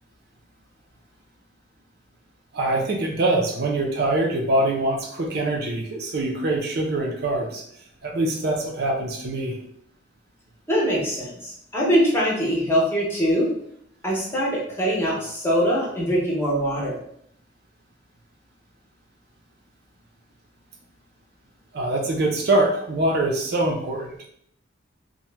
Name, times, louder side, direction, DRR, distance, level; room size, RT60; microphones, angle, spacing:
voice 1, 2.5-7.6 8.0-9.6 21.7-24.3, right 2 dB, 55° right, 0 dB, 0.5 m, -24 dB
voice 2, 10.7-13.5 14.0-16.9, equal, 10° left, -5 dB, 0.7 m, -23 dB
2.8 x 2.1 x 3.3 m, 0.70 s
head